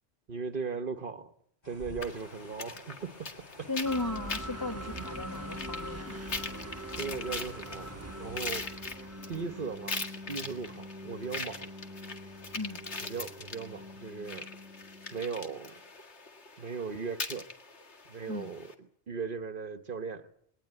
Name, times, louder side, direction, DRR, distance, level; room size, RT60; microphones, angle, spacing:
voice 1, 0.3-1.3 1.6-3.3 3.6-3.7 5.0-5.1 7.0-7.9 8.2-8.7 9.3-11.7 13.0-14.5 15.1-15.7 16.6-17.5 18.1-20.3, right 5 dB, 50° right, 11 dB, 1.2 m, -38 dB
sound 1, 1.6-8.5, left 1 dB, 40° left, 3.9 m, -51 dB
sound 2, 2.0-18.7, left 3 dB, 85° left, 2.2 m, -42 dB
voice 2, 3.7-6.2 12.5-12.8 18.3-18.5, left 3 dB, 20° left, 7 dB, 1.2 m, -36 dB
sound 3, 3.8-15.6, equal, 15° right, 1.2 m, -44 dB
22.0 x 18.5 x 9.7 m, 0.70 s
omnidirectional pair, 1.1 m